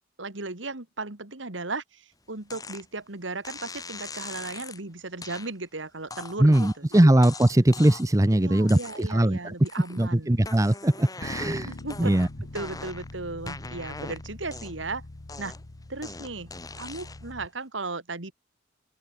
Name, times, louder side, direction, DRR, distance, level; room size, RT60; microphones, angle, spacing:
voice 1, 0.2-7.1 8.3-10.4 11.6-12.1 12.5-15.0 15.4-15.6 15.9-18.3, right 3 dB, 80° right, 2.4 m, -36 dB
sound 1, 2.5-2.8 3.4-4.8 5.2-5.5 6.1-8.2 8.6-9.3 9.6-10.1 10.4-13.1 13.5-14.9 15.3-17.3, left 3 dB, 20° left, 4.0 m, -41 dB
voice 2, 6.4-9.5 10.0-11.7 12.0-12.3, right 1 dB, 15° right, 0.7 m, -21 dB
Bass guitar, 11.2-17.5, left 2 dB, 55° left, 1.2 m, -43 dB
open air
head